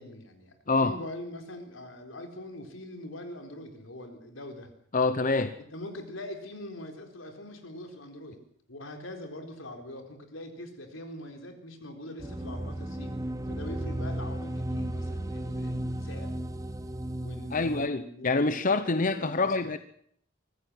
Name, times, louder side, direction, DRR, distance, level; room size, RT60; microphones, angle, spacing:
voice 1, 0.0-4.7 5.7-8.4 8.7-16.3 17.1-19.7, left 1 dB, 85° left, 4.1 m, -43 dB
voice 2, 4.9-5.6 17.5-19.8, left 3 dB, 40° left, 0.9 m, -26 dB
sound 1, 12.2-17.9, right 1 dB, 15° right, 1.0 m, -34 dB
24.0 x 15.0 x 7.9 m
head